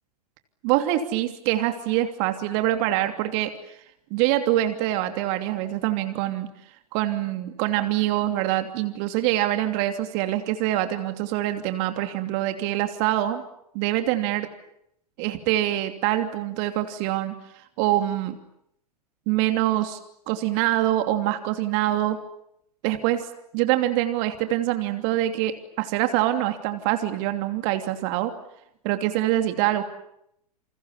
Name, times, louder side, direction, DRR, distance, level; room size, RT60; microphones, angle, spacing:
voice 1, 0.6-3.5 4.1-6.5 6.9-13.4 13.7-14.5 15.2-17.3 17.8-18.3 19.3-20.0 20.3-22.2 22.8-23.2 23.5-28.3 28.8-29.8, right 14 dB, 45° right, 7 dB, 2.9 m, -24 dB
29.5 x 28.0 x 7.3 m, 0.75 s
figure-of-eight pair, 100°, 20 cm